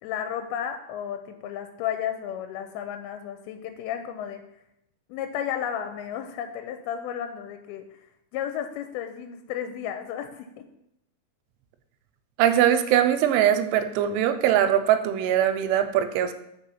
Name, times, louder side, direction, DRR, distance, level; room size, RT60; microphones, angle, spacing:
voice 1, 0.0-4.4 5.1-7.8 8.3-10.7, left 9 dB, 80° left, 7 dB, 2.4 m, -33 dB
voice 2, 12.4-16.3, right 10 dB, 90° right, 9 dB, 2.6 m, -21 dB
5.2 x 4.5 x 5.5 m, 0.80 s
omnidirectional pair, 4.6 m